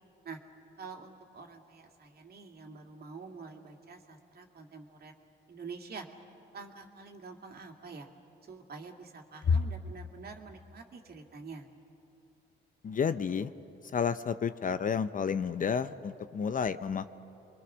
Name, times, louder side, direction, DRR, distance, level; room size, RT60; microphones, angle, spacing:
voice 1, 0.8-5.1 5.5-6.1 6.5-8.1 8.5-11.7, right 4 dB, 50° right, 3 dB, 2.4 m, -47 dB
voice 2, 12.8-13.5 13.9-17.1, left 6 dB, 45° left, 12 dB, 0.7 m, -30 dB
29.0 x 23.0 x 6.3 m, 2.8 s
cardioid pair, 90°, 20 cm